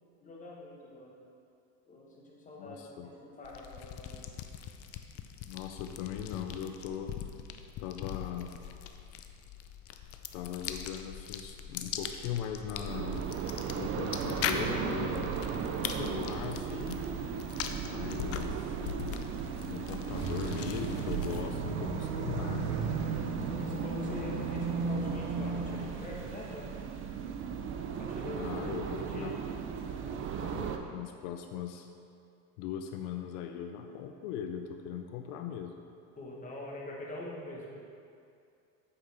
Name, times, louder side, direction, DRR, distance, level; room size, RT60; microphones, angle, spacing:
voice 1, 0.2-1.2 1.8-4.2 23.6-26.8 28.0-28.5 28.9-29.3 36.2-37.7, left 1 dB, 20° left, -4 dB, 1.3 m, -44 dB
voice 2, 2.6-3.1 5.5-7.1 7.8-8.6 10.3-13.3 13.7-15.3 15.8-17.1 17.8-18.8 19.7-22.8 28.4-29.3 30.4-31.9 32.6-35.8, left 8 dB, 80° left, 5 dB, 0.6 m, -39 dB
sound 1, 3.4-21.6, left 8 dB, 40° left, 0.4 m, -41 dB
sound 2, 12.9-30.8, right 7 dB, 35° right, 0.4 m, -37 dB
sound 3, 20.1-25.9, right 5 dB, 90° right, 0.8 m, -35 dB
8.2 x 5.7 x 3.4 m, 2.5 s
cardioid pair, 135°, 39 cm